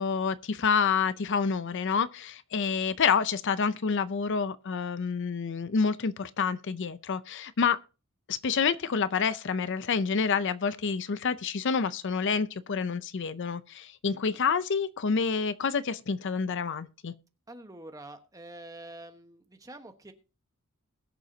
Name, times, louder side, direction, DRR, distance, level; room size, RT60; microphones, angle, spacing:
voice 1, 0.0-7.8 8.3-17.1, left 5 dB, 55° left, 0.6 m, -28 dB
voice 2, 17.5-20.1, right 1 dB, 15° right, 1.2 m, -46 dB
21.0 x 7.1 x 2.8 m
head